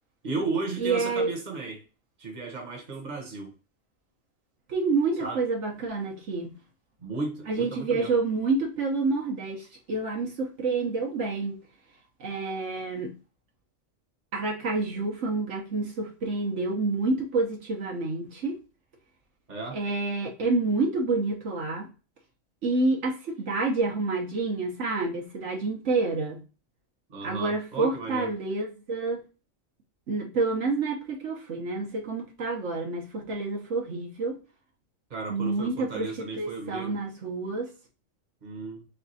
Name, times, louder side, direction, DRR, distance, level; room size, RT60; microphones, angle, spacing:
voice 1, 0.2-1.8 2.2-3.5 5.2-5.4 7.0-8.1 19.5-19.8 27.1-28.3 35.1-36.9 38.4-38.9, right 3 dB, 40° right, 1.2 m, -34 dB
voice 2, 0.8-1.3 4.7-6.6 7.5-11.6 12.2-13.1 14.3-18.6 19.7-21.9 22.6-26.4 27.2-29.2 30.1-34.4 35.3-37.7, right 3 dB, 75° right, 1.3 m, -28 dB
3.5 x 3.3 x 4.0 m
omnidirectional pair, 1.3 m